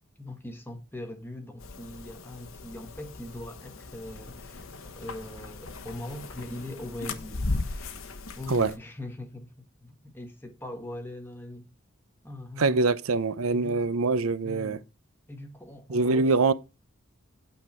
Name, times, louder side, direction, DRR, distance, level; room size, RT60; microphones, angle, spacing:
voice 1, 0.2-8.0 8.4-9.5 9.8-11.6 12.2-12.9 13.5-14.0 14.4-14.8 15.3-16.3, left 1 dB, 10° left, 1.4 m, -41 dB
sound 1, 1.6-8.8, left 2 dB, 75° left, 1.2 m, -37 dB
voice 2, 12.6-14.8 15.9-16.5, right 3 dB, 90° right, 0.6 m, -24 dB
9.1 x 6.4 x 4.3 m
head